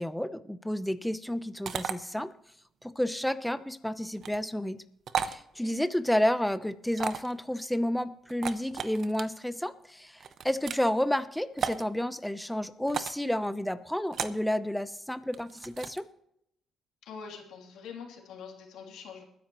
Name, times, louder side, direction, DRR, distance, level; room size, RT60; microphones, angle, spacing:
voice 1, 0.0-2.3 2.8-4.8 5.2-16.0, left 1 dB, 5° left, 12 dB, 0.8 m, -31 dB
sound 1, 1.6-1.9 4.1-4.4 5.1-5.4 6.9-7.3 8.3-9.2 10.2-10.9 11.6-11.8 12.9-13.2 14.1-14.4 15.3-16.0, right 7 dB, 60° right, 0.8 m, -34 dB
voice 2, 17.0-19.2, left 6 dB, 85° left, 1 dB, 2.9 m, -44 dB
21.0 x 10.0 x 3.0 m, 0.75 s
cardioid pair, 90°, 0 cm